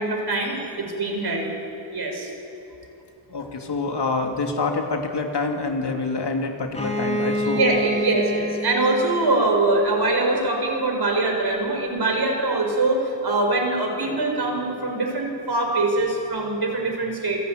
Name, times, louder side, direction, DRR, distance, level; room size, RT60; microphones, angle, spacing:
voice 1, 0.0-2.3 7.4-17.4, right 2 dB, 55° right, 2 dB, 6.0 m, -23 dB
voice 2, 3.3-7.7, left 3 dB, 60° left, 3 dB, 2.8 m, -26 dB
Bowed string instrument, 6.7-10.4, right 1 dB, 15° left, 2.5 m, -28 dB
27.5 x 17.0 x 9.5 m, 2.9 s
wide cardioid pair, 80°, 46 cm